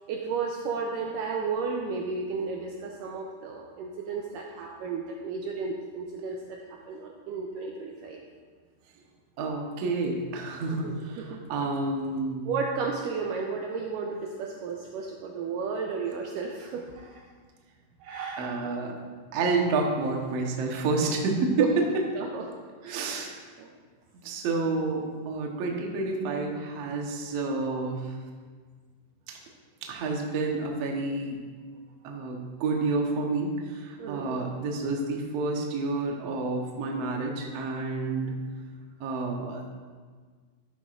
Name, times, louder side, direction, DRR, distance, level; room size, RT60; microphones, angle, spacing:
voice 1, 0.1-6.6 6.9-8.2 10.7-11.4 12.5-17.2 18.0-18.4 21.6-21.7 22.2-22.5 22.8-23.1 23.6-23.7 34.0-34.4, right 5 dB, 85° right, 0 dB, 2.0 m, -33 dB
voice 2, 9.4-12.5 18.4-18.9 19.3-21.8 22.9-23.4 24.2-28.1 29.3-29.4 29.9-31.4 32.0-38.4 39.0-39.7, right 3 dB, 70° right, 0 dB, 1.6 m, -29 dB
11.5 x 9.2 x 2.5 m, 1.5 s
omnidirectional pair, 4.4 m